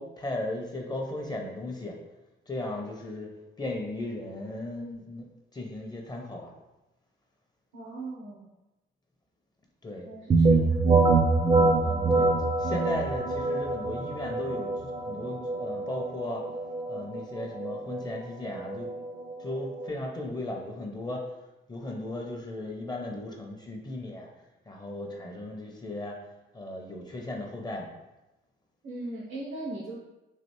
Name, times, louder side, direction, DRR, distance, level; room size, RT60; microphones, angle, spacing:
voice 1, 0.0-2.0 2.5-5.2 5.5-6.5 9.8-10.1 11.8-16.5 16.9-18.9 19.4-21.3 21.7-24.3 24.7-26.2 26.5-27.9, left 1 dB, 20° left, 1 dB, 0.6 m, -36 dB
voice 2, 7.7-8.5 10.0-10.8 28.8-30.0, right 2 dB, 75° right, -6 dB, 0.8 m, -39 dB
sound 1, 10.3-19.9, right 3 dB, 25° right, 0.4 m, -25 dB
3.2 x 2.5 x 3.0 m, 1.0 s
cardioid pair, 90°, 20 cm